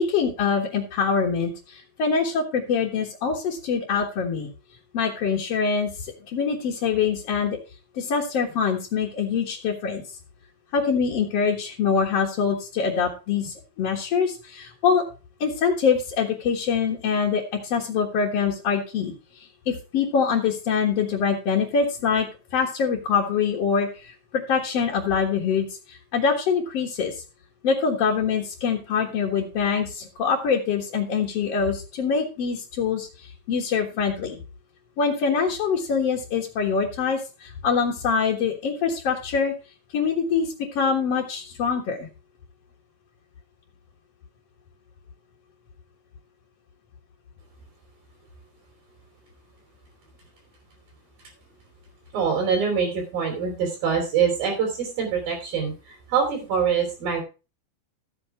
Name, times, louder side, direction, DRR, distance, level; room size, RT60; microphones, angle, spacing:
voice 1, 0.0-4.5 4.9-7.6 7.9-10.0 10.7-15.0 15.4-22.3 22.5-27.1 27.6-34.4 35.0-39.5 39.9-42.1, left 6 dB, 55° left, -1 dB, 2.1 m, -24 dB
voice 2, 52.1-57.2, right 6 dB, 75° right, 0 dB, 5.5 m, -24 dB
13.5 x 8.9 x 3.4 m, 0.32 s
omnidirectional pair, 4.2 m